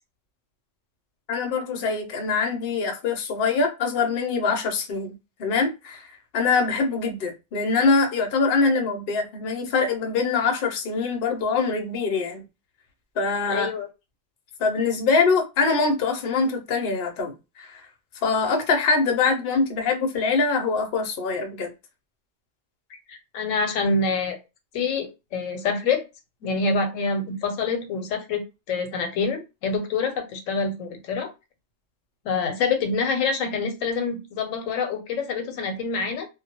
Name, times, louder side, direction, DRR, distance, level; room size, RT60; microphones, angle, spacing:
voice 1, 1.3-6.1 6.3-12.4 13.2-13.7 14.6-17.8 18.2-21.7, left 4 dB, 60° left, 0.7 m, -24 dB
voice 2, 13.5-13.9 22.9-24.4 24.7-26.1 26.4-31.3 32.2-36.3, left 4 dB, 85° left, 1.0 m, -26 dB
2.2 x 2.0 x 2.8 m
omnidirectional pair, 1.3 m